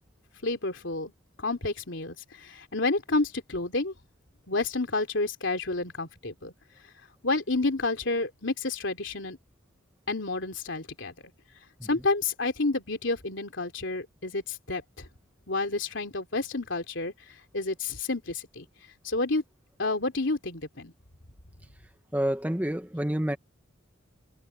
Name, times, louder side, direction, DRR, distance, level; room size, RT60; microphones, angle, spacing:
voice 1, 0.4-1.1 1.4-2.1 2.4-3.9 4.5-6.5 7.2-9.4 10.1-11.1 11.8-15.1 15.5-17.1 17.5-18.7 19.0-19.4 19.8-20.9, left 3 dB, 70° left, 3.2 m, -29 dB
voice 2, 22.1-23.4, equal, 10° right, 1.1 m, -28 dB
head